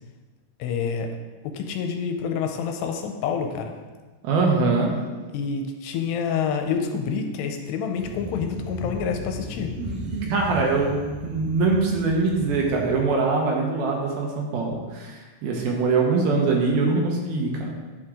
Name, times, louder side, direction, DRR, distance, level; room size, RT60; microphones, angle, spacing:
voice 1, 0.6-1.1 1.4-3.7 5.3-9.7, left 6 dB, 90° left, 4 dB, 2.7 m, -27 dB
voice 2, 4.2-4.9 9.8-17.7, right 3 dB, 75° right, 0 dB, 2.5 m, -23 dB
sound 1, 7.9-13.0, left 1 dB, 45° right, 3.4 m, -37 dB
9.8 x 4.5 x 3.7 m, 1.3 s
omnidirectional pair, 4.8 m